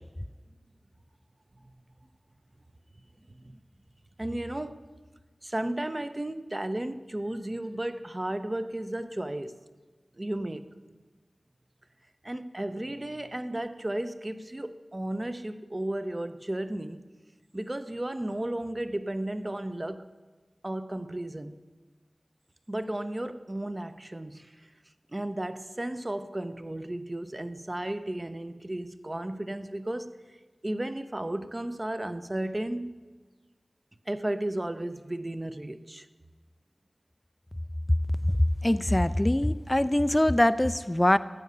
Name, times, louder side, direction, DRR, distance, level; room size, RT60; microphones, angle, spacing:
voice 1, 4.2-4.9 5.4-9.6 10.2-10.7 12.2-17.0 17.5-20.1 20.6-21.6 22.7-24.6 25.1-30.2 30.6-33.0 34.1-36.1, right 1 dB, 30° right, 0.7 m, -34 dB
voice 2, 38.6-41.2, left 1 dB, 20° left, 0.3 m, -23 dB
14.5 x 5.6 x 9.4 m
wide cardioid pair, 45°, 0 cm